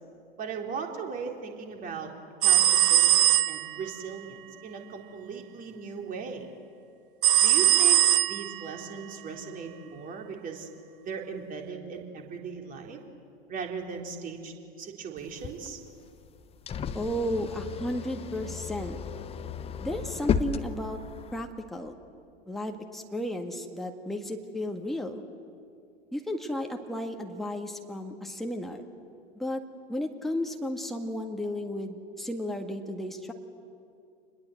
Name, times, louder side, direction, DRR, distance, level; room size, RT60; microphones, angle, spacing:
voice 1, 0.4-2.1 2.4-6.5 7.3-10.7 11.0-13.0 13.5-15.8, right 5 dB, 25° right, 2 dB, 3.6 m, -38 dB
sound 1, 2.4-3.9 7.2-8.7, right 12 dB, 60° right, 0.8 m, -21 dB
sound 2, 15.2-21.4, left 6 dB, 20° left, 1.0 m, -34 dB
voice 2, 16.9-19.0 19.8-21.0 21.3-21.9 22.5-25.2 26.1-28.8 29.4-29.6 29.9-33.3, left 1 dB, ahead, 3 dB, 1.8 m, -33 dB
28.5 x 21.0 x 7.9 m, 2.4 s
figure-of-eight pair, 90°, 30 cm